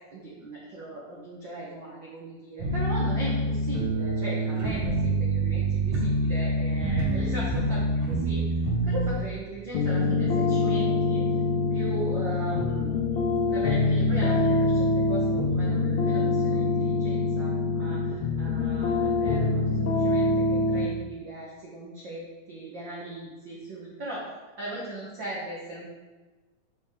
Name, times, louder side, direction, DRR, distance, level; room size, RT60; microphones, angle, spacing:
voice 1, 0.1-8.4 8.8-11.3 11.7-13.0 13.5-24.3 24.6-25.9, right 1 dB, 75° right, -5 dB, 1.0 m, -38 dB
sound 1, 2.6-9.1, right 2 dB, 45° right, 2.6 m, -26 dB
sound 2, 9.7-20.9, left 3 dB, 70° left, 1.8 m, -25 dB
7.3 x 6.2 x 3.7 m, 1.3 s
omnidirectional pair, 3.8 m